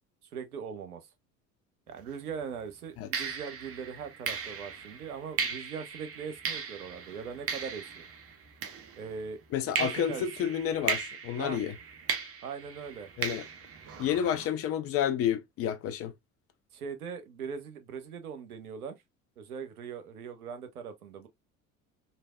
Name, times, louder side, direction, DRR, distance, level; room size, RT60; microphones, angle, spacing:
voice 1, 0.3-1.0 1.9-8.1 9.0-10.5 11.4-11.6 12.4-13.1 16.7-19.0 19.4-21.3, right 6 dB, 80° right, 0.7 m, -40 dB
sound 1, 2.0-2.2 3.1-9.3 9.8-14.5, right 6 dB, 30° right, 0.8 m, -37 dB
voice 2, 9.5-11.7 13.2-13.4 14.0-16.1, left 9 dB, 35° left, 0.5 m, -30 dB
3.3 x 2.6 x 2.3 m
figure-of-eight pair, 60°, 44 cm